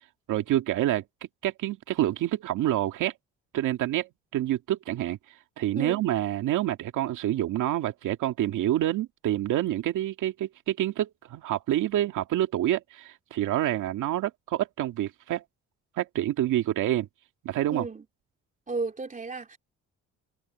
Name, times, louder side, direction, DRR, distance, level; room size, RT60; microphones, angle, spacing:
voice 1, 0.3-1.0 1.4-3.1 3.5-5.2 5.6-15.4 16.0-17.1 17.4-17.9, right 13 dB, 85° right, 2.2 m, -27 dB
voice 2, 5.7-6.1 17.7-18.0 18.7-19.6, right 3 dB, 25° right, 3.2 m, -33 dB
cardioid pair, 90°, 30 cm